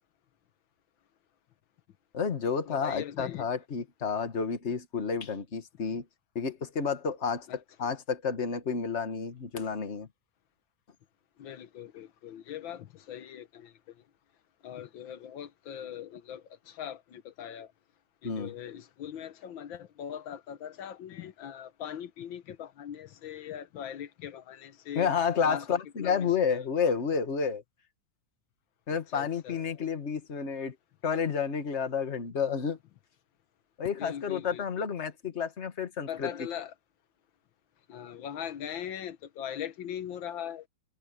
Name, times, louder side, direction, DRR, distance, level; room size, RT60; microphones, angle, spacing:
voice 1, 2.1-6.0 6.4-10.1 18.2-18.7 24.9-27.6 28.9-30.8 31.0-32.8 33.8-36.3, left 6 dB, 35° left, 1.8 m, -30 dB
voice 2, 2.7-3.5 7.5-7.6 11.4-13.7 14.6-17.7 18.2-25.1 25.4-25.7 26.0-26.6 29.1-29.6 34.0-34.9 36.1-36.7 37.9-40.7, left 9 dB, 85° left, 1.7 m, -40 dB
omnidirectional pair, 2.1 m